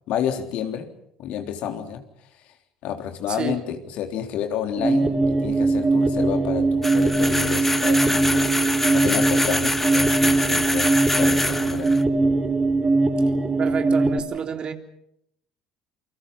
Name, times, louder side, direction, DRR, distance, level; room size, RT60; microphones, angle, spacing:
voice 1, 0.1-0.9 1.2-2.0 2.8-8.5 8.9-12.0, left 9 dB, 60° left, 6 dB, 3.6 m, -30 dB
voice 2, 3.3-3.6 13.6-14.7, right 6 dB, 40° right, 6 dB, 3.5 m, -29 dB
sound 1, 4.8-14.2, right 3 dB, 20° right, 3.2 m, -21 dB
sound 2, 6.8-12.0, left 1 dB, 10° left, 1.7 m, -25 dB
28.5 x 25.0 x 5.7 m, 0.75 s
hypercardioid pair, 65°, 2 cm